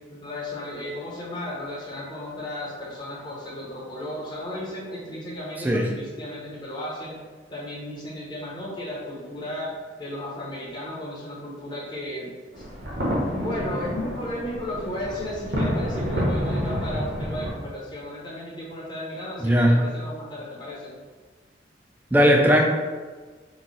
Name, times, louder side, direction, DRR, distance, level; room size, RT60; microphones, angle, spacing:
voice 1, 0.1-7.2 7.5-9.7 10.0-12.7 13.3-21.0, left 1 dB, 25° left, -6 dB, 0.8 m, -34 dB
sound 1, 12.5-17.5, equal, 70° right, 0.9 m, -28 dB
voice 2, 19.4-19.7 22.1-22.6, equal, 10° right, 1 dB, 0.3 m, -17 dB
3.0 x 2.3 x 3.8 m, 1.4 s
head